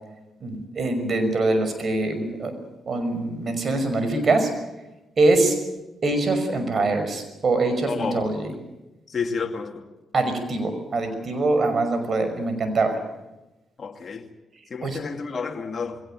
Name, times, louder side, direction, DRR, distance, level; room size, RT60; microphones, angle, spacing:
voice 1, 0.4-2.5 2.9-4.5 5.2-5.6 6.0-8.5 10.1-13.0 14.8-15.0, right 2 dB, 50° right, 5.8 m, -23 dB
voice 2, 7.8-8.4 9.1-9.8 13.8-14.3 14.7-16.0, left 5 dB, 45° left, 2.5 m, -30 dB
22.0 x 18.0 x 9.0 m
supercardioid pair, 65°, 0 cm